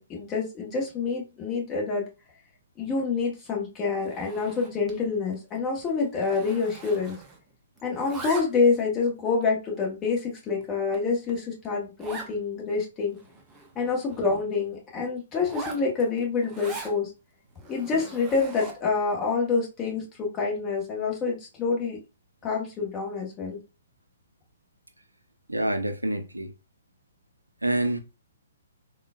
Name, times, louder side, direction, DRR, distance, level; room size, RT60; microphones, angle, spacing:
voice 1, 0.0-2.0 2.8-7.2 7.8-13.2 13.7-17.1 17.7-22.0 22.4-23.6, left 4 dB, 20° left, 1.1 m, -27 dB
Zipper (clothing), 4.0-5.0 5.3-5.6 5.8-7.5 7.8-8.8 9.4-9.5 10.1-10.2 10.6-10.7 10.9-11.0 11.3-11.4 12.0-12.3 12.8-12.9 13.1-14.4 15.4-17.0 17.6-19.0, right 3 dB, 10° right, 0.6 m, -42 dB
voice 2, 25.5-26.5 27.6-28.0, right 1 dB, 85° right, 0.5 m, -27 dB
3.7 x 2.3 x 2.2 m
figure-of-eight pair, 125°, 0 cm